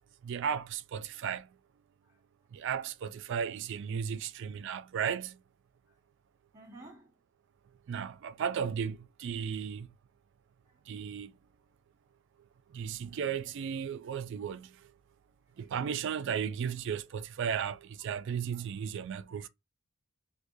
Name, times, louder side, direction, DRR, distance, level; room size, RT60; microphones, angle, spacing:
voice 1, 0.2-1.5 2.5-5.4 7.9-9.9 10.9-11.3 12.7-14.7 15.6-19.5, right 7 dB, 60° right, 0.3 m, -35 dB
voice 2, 6.5-7.2 10.6-11.1 15.6-15.7 18.5-18.7 19.3-19.5, right 2 dB, 15° right, 1.3 m, -55 dB
4.6 x 2.2 x 2.6 m
head